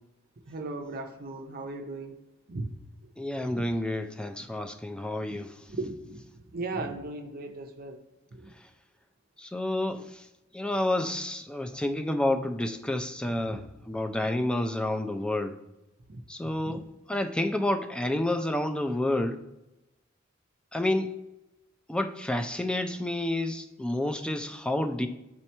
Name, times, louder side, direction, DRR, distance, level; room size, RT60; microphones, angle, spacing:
voice 1, 0.5-2.2 2.5-2.7 3.0-3.1 3.4-3.7 5.7-8.0 8.3-8.5 13.4-13.6 16.1-16.8, right 2 dB, 45° right, 5 dB, 0.5 m, -37 dB
voice 2, 3.2-5.5 9.4-10.2 10.5-15.5 16.3-16.8 17.1-19.4 20.7-21.1 21.9-25.1, left 1 dB, 5° left, 7 dB, 0.3 m, -29 dB
7.4 x 2.9 x 4.4 m, 0.97 s
head